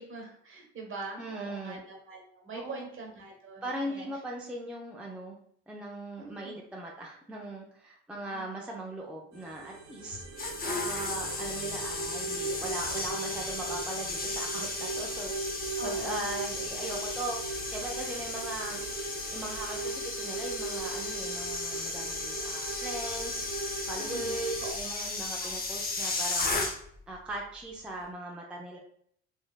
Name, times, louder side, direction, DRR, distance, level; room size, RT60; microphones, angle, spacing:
voice 1, 0.0-4.1 6.2-6.5 8.3-8.5 15.8-16.2 23.9-24.3 24.6-25.0, right 3 dB, 40° right, 1 dB, 1.1 m, -43 dB
voice 2, 1.2-1.8 2.5-2.9 3.6-5.4 5.7-15.3 15.8-18.8 19.3-26.6 27.1-28.8, right 1 dB, 5° right, -2 dB, 0.5 m, -39 dB
sound 1, 9.3-24.7, right 3 dB, 60° right, 1.1 m, -38 dB
sound 2, 10.1-27.1 27.3-27.6, left 3 dB, 30° left, 0.8 m, -35 dB
3.0 x 2.7 x 2.3 m, 0.67 s
hypercardioid pair, 55°, 31 cm